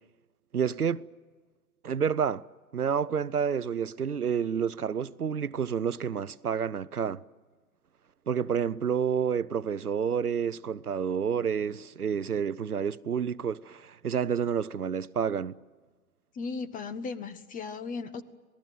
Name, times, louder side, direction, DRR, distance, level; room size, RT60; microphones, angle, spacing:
voice 1, 0.5-1.0 1.8-2.4 2.7-7.2 8.3-15.5, right 7 dB, 90° right, 0.8 m, -29 dB
voice 2, 16.3-18.2, left 4 dB, 20° left, 1.2 m, -36 dB
27.0 x 18.5 x 9.3 m
figure-of-eight pair, 110°, 44 cm